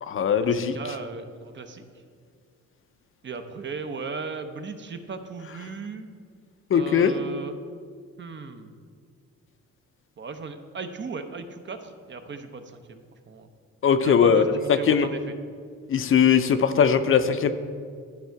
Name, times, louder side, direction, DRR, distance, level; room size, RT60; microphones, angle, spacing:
voice 1, 0.0-0.8 6.7-7.1 13.8-15.1 15.9-17.5, left 7 dB, 45° left, 10 dB, 0.5 m, -20 dB
voice 2, 0.5-1.9 3.2-6.1 6.7-7.6 8.2-8.7 10.2-13.5 14.0-15.3, right 4 dB, 40° right, 8 dB, 0.7 m, -37 dB
11.5 x 4.7 x 4.6 m, 2.1 s
cardioid pair, 90°, 30 cm